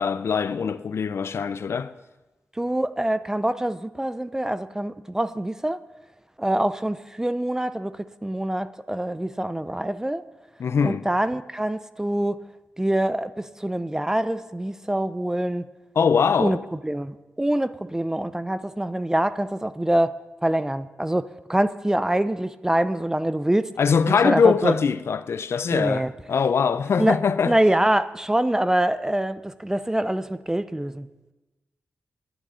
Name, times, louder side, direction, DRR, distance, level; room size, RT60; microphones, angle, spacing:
voice 1, 0.0-1.9 10.6-11.0 16.0-16.6 23.8-27.5, left 6 dB, 65° left, 0.4 m, -22 dB
voice 2, 2.6-5.8 6.4-10.2 10.8-12.4 12.8-15.6 16.4-16.6 16.8-20.1 20.4-23.7 24.1-24.7 25.7-26.1 27.0-27.2 27.4-31.3, right 1 dB, 10° right, 0.4 m, -25 dB
10.0 x 9.3 x 5.5 m
wide cardioid pair, 105°, 5 cm